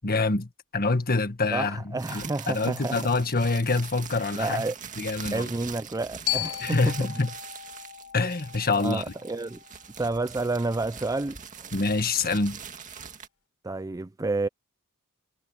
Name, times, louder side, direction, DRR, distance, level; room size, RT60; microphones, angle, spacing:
voice 1, 0.0-4.6 5.0-5.5 6.6-7.3 8.1-9.0 11.7-12.6, left 3 dB, 40° left, 1.7 m, -26 dB
voice 2, 1.5-3.0 4.3-4.7 5.3-7.1 8.8-9.6 10.0-11.7 13.6-14.5, right 2 dB, 15° right, 0.4 m, -30 dB
sound 1, 2.0-13.3, right 6 dB, 35° right, 2.1 m, -43 dB
Glockenspiel, 6.3-10.4, left 15 dB, 70° left, 5.2 m, -36 dB
head